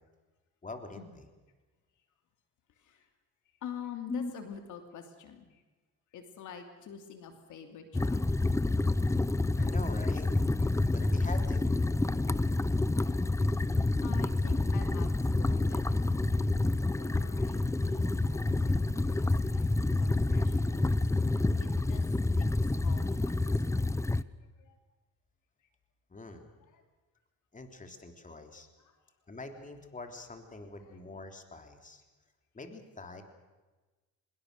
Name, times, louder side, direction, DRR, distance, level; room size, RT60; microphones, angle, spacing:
voice 1, 0.6-1.2 4.1-4.3 9.6-10.4 10.9-11.7 26.1-26.5 27.5-28.7 29.3-32.0 32.5-33.2, left 3 dB, 25° left, 5 dB, 3.3 m, -43 dB
voice 2, 2.7-3.1 3.6-5.6 6.1-8.5 13.6-21.0 21.6-22.0 22.4-24.8 25.6-25.7 26.7-26.9 28.8-29.0 30.8-31.0, left 8 dB, 80° left, 6 dB, 3.0 m, -48 dB
sound 1, 7.9-24.2, left 2 dB, 10° left, 0.7 m, -28 dB
25.0 x 21.5 x 6.7 m, 1.2 s
cardioid pair, 90°, 30 cm